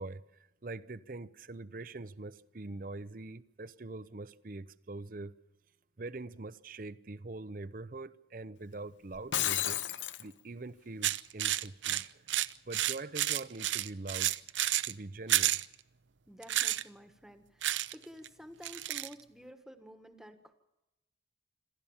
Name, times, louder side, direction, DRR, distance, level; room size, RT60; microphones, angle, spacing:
voice 1, 0.0-5.3 6.0-9.8 10.2-14.3 14.8-15.6, right 2 dB, 50° right, 0.7 m, -43 dB
Shatter, 9.1-10.2, left 11 dB, 80° left, 0.8 m, -32 dB
sound 1, 11.0-14.9 15.3-15.7 16.4-16.8 17.6-18.0 18.2-18.3 18.6-19.1, right 13 dB, 85° right, 0.6 m, -30 dB
voice 2, 16.3-20.5, equal, ahead, 1.4 m, -51 dB
27.0 x 13.5 x 7.2 m
head